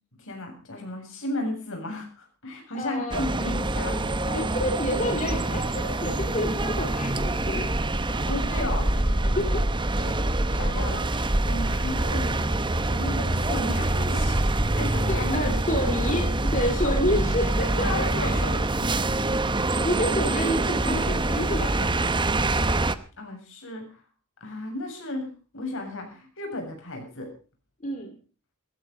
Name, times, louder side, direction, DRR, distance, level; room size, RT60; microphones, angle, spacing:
voice 1, 0.1-4.0 8.1-9.6 10.5-16.1 16.7-17.4 17.8-18.9 23.2-24.0 24.4-27.3, left 1 dB, 60° left, 3 dB, 7.3 m, -35 dB
voice 2, 2.7-3.2 4.3-7.7 9.4-9.5 15.1-18.4 19.4-22.0 27.8-28.2, left 1 dB, 35° left, 3 dB, 2.4 m, -29 dB
sound 1, 3.1-23.0, right 2 dB, 20° right, 0.9 m, -25 dB
sound 2, 9.9-13.1, left 2 dB, 40° right, 6.1 m, -48 dB
17.5 x 14.5 x 5.3 m, 0.37 s
head